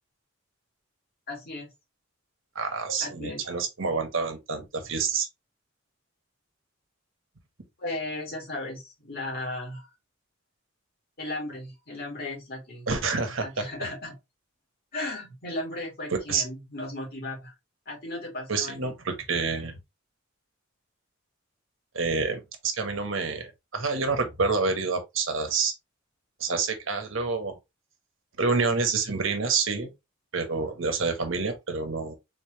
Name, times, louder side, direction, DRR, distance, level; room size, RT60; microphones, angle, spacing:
voice 1, 1.3-1.7 3.0-3.4 7.8-9.9 11.2-12.9 13.4-14.1 14.9-17.5 17.9-19.2, left 2 dB, 50° left, 2.3 m, -36 dB
voice 2, 2.5-5.3 12.9-13.5 16.3-16.4 18.5-19.8 21.9-25.7 26.4-27.6 28.4-29.9 30.3-32.2, right 4 dB, 70° right, 1.1 m, -28 dB
4.0 x 3.4 x 2.8 m
head